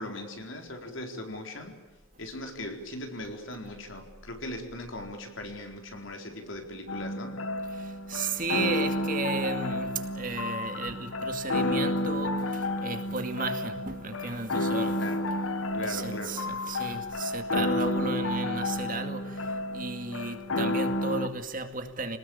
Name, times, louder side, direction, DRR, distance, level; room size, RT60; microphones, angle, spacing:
voice 1, 0.0-1.8 2.2-7.4 15.0-15.3 15.7-16.4, left 1 dB, 70° left, 4.4 m, -39 dB
sound 1, 6.9-21.3, left 1 dB, 85° left, 1.5 m, -31 dB
voice 2, 7.7-15.1 15.8-22.2, right 3 dB, 40° right, 2.3 m, -34 dB
27.0 x 19.5 x 8.8 m
head